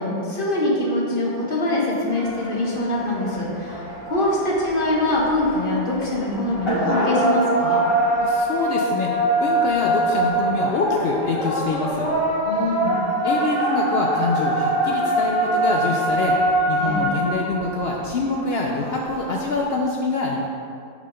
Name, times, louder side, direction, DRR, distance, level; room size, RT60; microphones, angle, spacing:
voice 1, 0.0-7.9 12.4-13.0 16.8-17.0, left 1 dB, 40° left, -4 dB, 1.1 m, -23 dB
sound 1, 2.1-19.6, right 1 dB, 20° left, 1.3 m, -24 dB
voice 2, 8.2-9.1 9.4-12.1 13.2-20.5, left 3 dB, 75° left, -1 dB, 0.5 m, -25 dB
5.6 x 4.9 x 5.0 m, 2.5 s
omnidirectional pair, 1.6 m